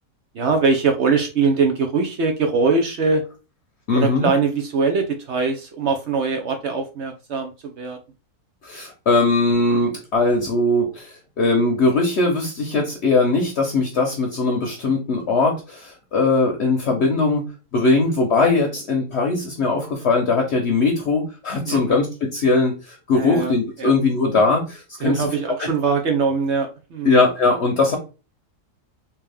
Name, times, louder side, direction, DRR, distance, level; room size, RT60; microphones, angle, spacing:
voice 1, 0.3-3.2 3.9-8.0 21.7-22.0 23.1-23.5 23.8-23.9 25.0-27.1, right 4 dB, 65° right, 4 dB, 0.7 m, -22 dB
voice 2, 3.9-4.3 8.6-17.5 17.7-22.1 22.3-25.3 25.6-25.7 27.0-28.0, left 3 dB, 55° left, 1 dB, 0.9 m, -20 dB
3.4 x 2.8 x 3.4 m, 0.31 s
omnidirectional pair, 1.6 m